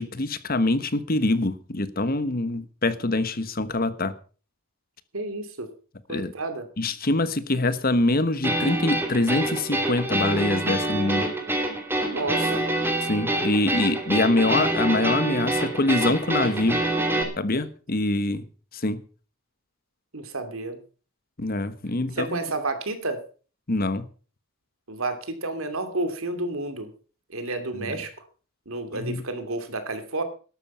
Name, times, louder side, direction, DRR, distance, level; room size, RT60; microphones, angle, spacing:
voice 1, 0.0-4.1 6.1-6.3 6.8-11.2 13.0-16.8 17.4-18.4 18.7-19.0 21.4-22.4 23.7-24.1 27.8-28.0 28.9-29.2, left 2 dB, 45° left, 1.2 m, -24 dB
voice 2, 5.1-5.7 6.1-6.7 12.1-12.6 20.1-20.8 22.1-23.2 24.9-26.9 27.3-28.1 28.7-30.2, right 2 dB, 80° right, 2.7 m, -30 dB
sound 1, 8.4-17.2, right 1 dB, 10° right, 2.8 m, -26 dB
13.0 x 12.0 x 5.6 m
head